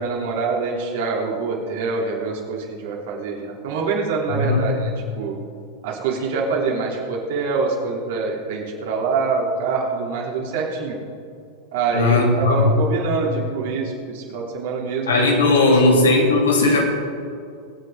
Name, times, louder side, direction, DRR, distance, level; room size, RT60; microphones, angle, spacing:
voice 1, 0.0-5.3 5.8-11.0 11.7-15.8, right 4 dB, 65° right, -2 dB, 3.3 m, -25 dB
voice 2, 4.3-4.8 11.9-12.8 15.1-16.8, left 2 dB, 85° left, -1 dB, 2.7 m, -17 dB
23.5 x 8.3 x 3.8 m, 2.4 s
hypercardioid pair, 100°, 0 cm